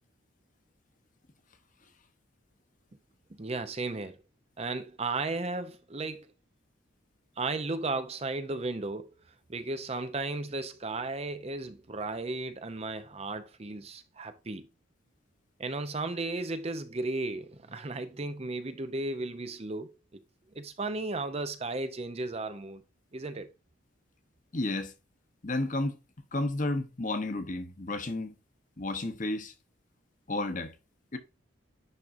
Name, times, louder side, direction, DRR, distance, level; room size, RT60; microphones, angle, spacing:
voice 1, 3.3-4.2 4.6-6.3 7.4-9.1 9.5-14.7 15.6-20.2 20.5-22.8 23.1-23.5, right 2 dB, 30° right, 0.6 m, -35 dB
voice 2, 24.5-24.9 25.4-26.0 26.3-28.3 28.8-29.5 30.3-30.7 31.1-31.2, left 2 dB, 40° left, 1.0 m, -32 dB
10.5 x 3.7 x 2.6 m
head